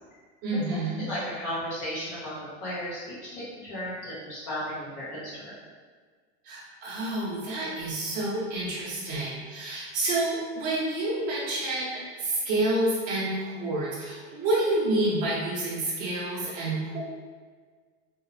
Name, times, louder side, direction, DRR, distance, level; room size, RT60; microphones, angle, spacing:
voice 1, 0.4-1.1 6.4-17.0, right 2 dB, 25° right, -6 dB, 0.6 m, -29 dB
voice 2, 1.1-5.5, equal, 35° left, -10 dB, 1.3 m, -35 dB
2.7 x 2.0 x 3.0 m, 1.5 s
supercardioid pair, 180°, 32 cm